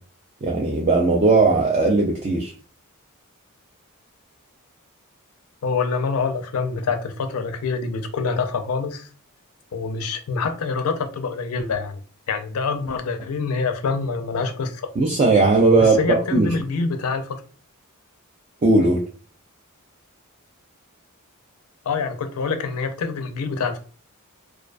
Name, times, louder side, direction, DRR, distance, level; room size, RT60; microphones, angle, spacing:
voice 1, 0.4-2.5 15.0-16.5 18.6-19.0, right 3 dB, 30° right, 0.3 m, -18 dB
voice 2, 5.6-9.1 9.7-12.0 12.3-14.9 15.8-17.4 21.9-23.8, left 4 dB, 80° left, 0.4 m, -26 dB
2.3 x 2.2 x 2.4 m
head